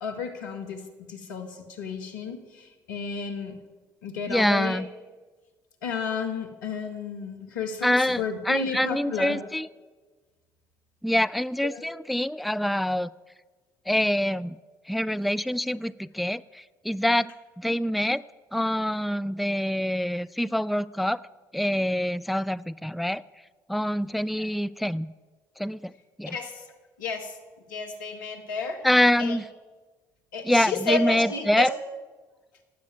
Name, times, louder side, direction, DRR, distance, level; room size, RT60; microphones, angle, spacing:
voice 1, 0.0-3.6 4.0-4.8 5.8-9.4 11.6-11.8 24.3-24.5 26.3-26.6 27.0-27.4 27.7-28.9 29.2-29.4 30.3-31.7, left 4 dB, 85° left, 5 dB, 1.7 m, -32 dB
voice 2, 4.3-4.9 7.8-9.7 11.0-13.1 13.9-14.6 14.9-18.2 18.5-21.2 21.5-23.2 23.7-25.1 25.6-25.9 26.2-26.4 28.8-29.4 30.4-31.7, left 1 dB, ahead, 17 dB, 0.4 m, -25 dB
16.0 x 8.4 x 9.2 m, 1.3 s
hypercardioid pair, 50°, 10 cm